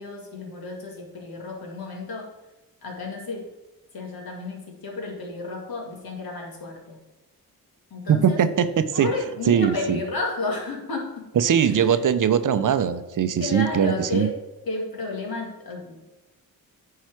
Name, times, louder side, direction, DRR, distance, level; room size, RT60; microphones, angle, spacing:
voice 1, 0.0-2.3 2.8-3.5 3.9-7.0 7.9-8.4 8.9-11.2 11.6-12.0 13.4-14.3 14.7-16.1, left 3 dB, 65° left, 0 dB, 2.3 m, -32 dB
voice 2, 8.1-9.1 9.5-10.0 11.4-14.3, right 8 dB, 55° right, 11 dB, 0.7 m, -21 dB
9.0 x 4.8 x 4.6 m, 1.0 s
cardioid pair, 65°, 38 cm